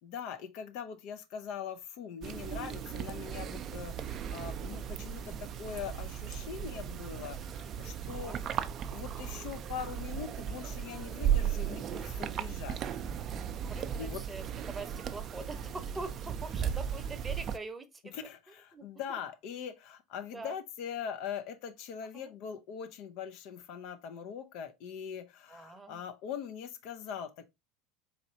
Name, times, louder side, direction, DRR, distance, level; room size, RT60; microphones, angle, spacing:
voice 1, 0.0-12.8 14.0-14.3 18.1-27.4, left 8 dB, 60° left, 0.6 m, -42 dB
sound 1, 2.2-17.6, right 9 dB, 40° right, 0.4 m, -36 dB
voice 2, 13.7-18.1 18.7-18.9 20.3-20.5 22.1-22.3 25.5-26.1, right 3 dB, 15° right, 0.8 m, -43 dB
4.2 x 3.1 x 2.8 m
hypercardioid pair, 75°, 0 cm